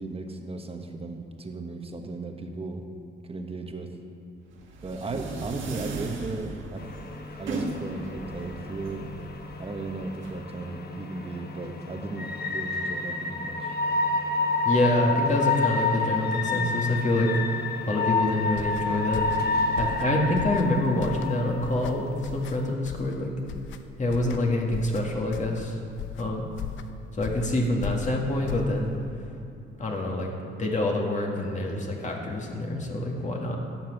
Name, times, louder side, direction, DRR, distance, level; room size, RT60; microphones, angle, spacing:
voice 1, 0.0-2.8 3.2-4.0 4.8-6.8 7.3-9.0 9.6-13.7, right 3 dB, 30° right, 4 dB, 1.3 m, -36 dB
sound 1, 4.5-10.3, right 3 dB, 75° right, 1.6 m, -37 dB
sound 2, 6.8-22.7, left 3 dB, 50° left, 1.1 m, -30 dB
voice 2, 14.6-17.3 17.9-19.2 19.8-23.3 24.0-25.8 26.2-26.5 27.1-28.9 29.8-30.3 30.6-33.6, left 1 dB, 35° left, 0 dB, 1.9 m, -26 dB
sound 3, 18.5-29.1, left 8 dB, 75° left, 0.7 m, -38 dB
12.0 x 5.9 x 8.0 m, 2.6 s
cardioid pair, 90°, 20 cm